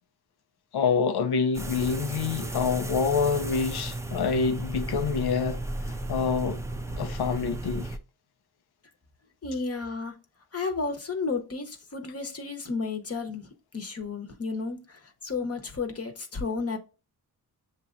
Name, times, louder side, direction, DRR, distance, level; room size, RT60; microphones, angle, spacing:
voice 1, 0.7-6.6 7.0-8.0, left 5 dB, 90° left, 0.6 m, -27 dB
sound 1, 1.5-8.0, right 1 dB, 10° right, 0.5 m, -34 dB
voice 2, 9.4-10.2 10.5-16.8, left 4 dB, 40° left, 0.9 m, -32 dB
7.1 x 2.9 x 2.5 m
cardioid pair, 80°, 37 cm